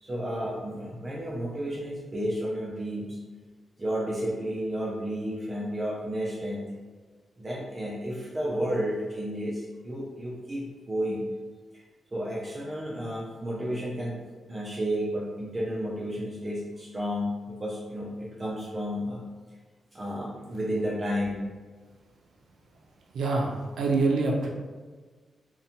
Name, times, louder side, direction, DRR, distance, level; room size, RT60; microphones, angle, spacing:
voice 1, 0.0-3.2 3.8-6.7 7.4-11.2 12.1-14.2 14.5-19.2 19.9-21.5, equal, 25° right, -6 dB, 0.4 m, -32 dB
voice 2, 23.1-24.5, right 3 dB, 90° right, -1 dB, 0.4 m, -25 dB
2.6 x 2.2 x 2.6 m, 1.4 s
cardioid pair, 110°, 0 cm